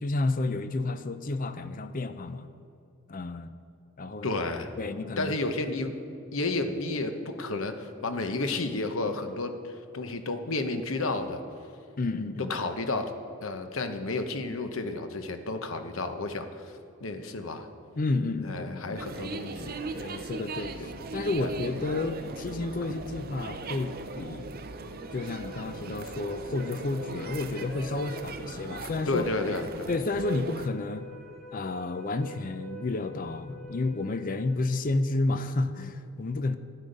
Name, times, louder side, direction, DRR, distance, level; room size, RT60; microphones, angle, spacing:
voice 1, 0.0-2.5 3.1-3.5 4.0-4.4 4.8-5.4 6.7-6.8 12.0-12.7 17.9-19.0 19.6-24.6 25.1-29.3 29.9-31.1 31.5-36.6, left 2 dB, 40° left, 11 dB, 0.5 m, -31 dB
voice 2, 4.2-4.7 5.2-5.9 6.3-11.4 12.5-13.1 13.4-16.5 17.0-17.7 18.4-19.8 20.8-20.9 21.4-21.5 29.1-29.9, left 2 dB, 65° left, 7 dB, 0.9 m, -31 dB
sound 1, 19.0-30.7, right 3 dB, 45° right, 0.6 m, -39 dB
sound 2, 24.7-35.1, equal, ahead, 1.7 m, -48 dB
12.0 x 8.4 x 5.3 m, 2.6 s
head